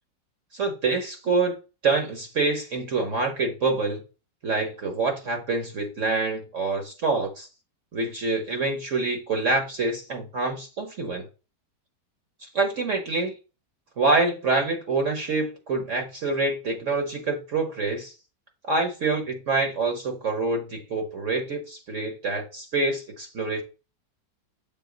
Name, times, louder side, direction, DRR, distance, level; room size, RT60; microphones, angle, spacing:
voice 1, 0.5-1.6 1.8-4.0 4.4-7.5 7.9-11.3 12.5-13.3 14.0-18.1 18.6-23.6, right 3 dB, 50° right, 1.2 m, -26 dB
7.2 x 3.9 x 3.8 m
omnidirectional pair, 1.8 m